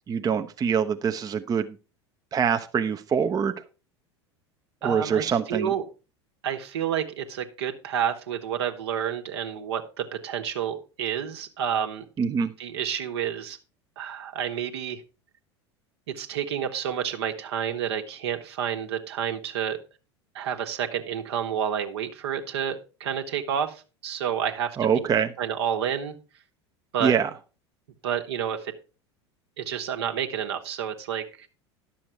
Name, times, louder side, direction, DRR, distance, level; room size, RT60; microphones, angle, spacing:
voice 1, 0.1-1.8 2.3-3.6 4.8-5.7 12.2-12.5 24.8-25.3 27.0-27.3, right 7 dB, 25° right, 0.7 m, -24 dB
voice 2, 4.8-5.8 6.4-12.1 12.6-13.6 14.0-15.0 16.1-19.8 20.3-24.7 24.9-25.0 25.4-26.1 26.9-27.1 28.0-28.7 29.6-31.5, right 8 dB, 70° right, 1.4 m, -29 dB
11.0 x 7.1 x 4.6 m
figure-of-eight pair, 80°, 14 cm